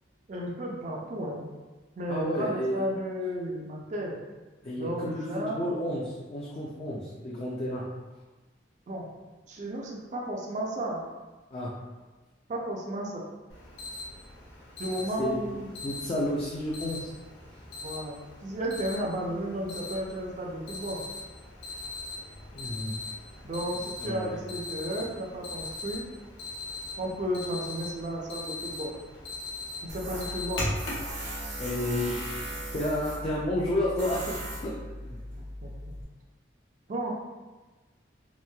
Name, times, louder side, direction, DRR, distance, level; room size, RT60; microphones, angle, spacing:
voice 1, 0.3-1.5 2.0-4.2 4.8-5.7 8.9-9.1 9.5-11.0 12.5-13.2 14.8-15.7 17.8-18.2 18.4-21.0 23.4-26.1 27.0-28.9 29.9-30.6 35.6-36.0 36.9-37.1, right 1 dB, 40° right, -2 dB, 0.4 m, -33 dB
voice 2, 2.1-2.8 4.6-7.8 11.5-11.7 15.2-15.4 15.8-17.1 22.5-23.0 24.0-24.4 30.2-30.4 31.6-32.2 32.5-34.3 34.6-35.2, left 1 dB, 30° left, -5 dB, 0.3 m, -31 dB
Alarm, 13.5-31.1, left 2 dB, 90° left, 0.8 m, -40 dB
Tools, 29.9-36.0, equal, 60° right, 0.9 m, -38 dB
3.0 x 2.5 x 2.2 m, 1.2 s
head